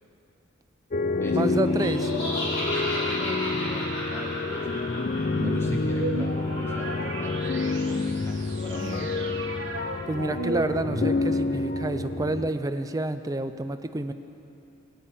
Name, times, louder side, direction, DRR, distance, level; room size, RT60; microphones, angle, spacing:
sound 1, 0.9-12.5, left 3 dB, 40° left, 0.4 m, -28 dB
voice 1, 1.3-2.1 8.8-9.1 10.1-14.1, right 2 dB, 15° right, 10 dB, 0.4 m, -29 dB
Laughter, 1.7-7.3, left 1 dB, 75° left, 4.3 m, -33 dB
voice 2, 2.3-4.8 5.4-9.4, left 1 dB, 15° left, -2 dB, 1.8 m, -43 dB
sound 2, 5.3-11.6, right 2 dB, 60° right, 1.2 m, -34 dB
14.5 x 9.3 x 8.7 m, 2.9 s
head